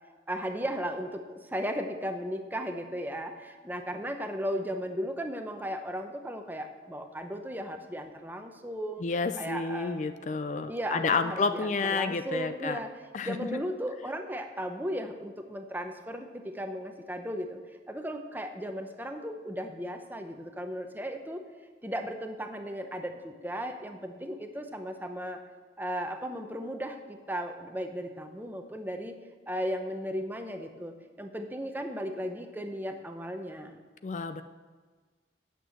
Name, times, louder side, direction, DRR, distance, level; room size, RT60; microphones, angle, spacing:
voice 1, 0.3-9.0 9.4-10.1 10.7-12.9 13.2-17.6 17.9-21.4 21.8-25.4 25.8-29.2 29.5-33.8, equal, 10° right, 6 dB, 0.7 m, -36 dB
voice 2, 9.0-12.8 13.1-13.6 34.0-34.4, left 4 dB, 45° left, 10 dB, 0.4 m, -30 dB
9.1 x 6.9 x 7.7 m, 1.4 s
head